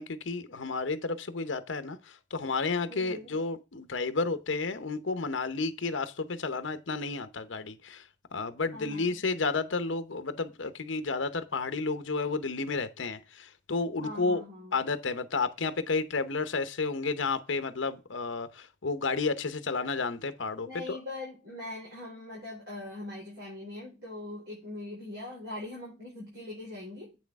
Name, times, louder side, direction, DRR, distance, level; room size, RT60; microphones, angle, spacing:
voice 1, 0.0-2.0 2.3-8.0 8.3-14.4 14.7-21.0, left 4 dB, 80° left, 0.8 m, -31 dB
voice 2, 2.9-3.3 8.7-9.1 14.0-14.8 20.6-27.2, left 2 dB, 60° right, 4.7 m, -41 dB
8.5 x 6.3 x 3.5 m
head